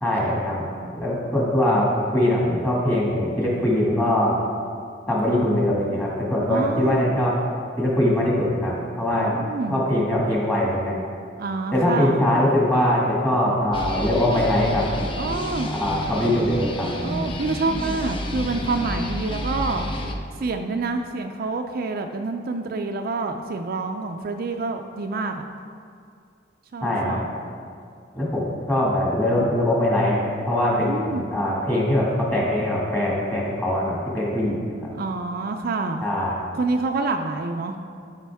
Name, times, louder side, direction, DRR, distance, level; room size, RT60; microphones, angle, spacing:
voice 1, 0.0-0.7 0.9-4.4 5.1-7.4 7.8-9.4 9.7-11.0 11.7-14.9 15.7-16.9 26.8-27.3 28.1-34.6 36.0-36.4, left 1 dB, 10° left, -5 dB, 1.9 m, -22 dB
voice 2, 6.4-7.2 9.1-9.8 11.4-12.2 15.2-15.7 17.0-19.9 20.4-25.4 26.7-27.2 30.9-31.3 34.9-36.0 36.5-37.8, right 3 dB, 55° right, 5 dB, 0.4 m, -27 dB
sound 1, 13.7-20.1, left 1 dB, 30° left, 0.6 m, -30 dB
12.0 x 5.3 x 3.5 m, 2.4 s
head